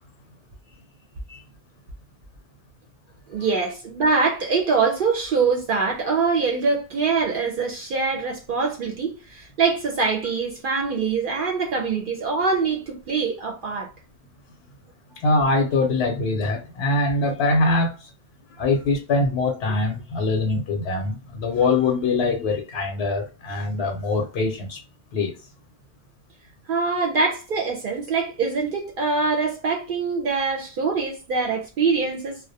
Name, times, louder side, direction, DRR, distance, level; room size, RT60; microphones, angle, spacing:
voice 1, 3.3-13.9 26.7-32.4, right 4 dB, 60° right, 0.6 m, -24 dB
voice 2, 15.2-18.1 18.6-24.8 25.1-25.3, left 3 dB, 85° left, 0.9 m, -23 dB
2.3 x 2.0 x 2.6 m
omnidirectional pair, 1.1 m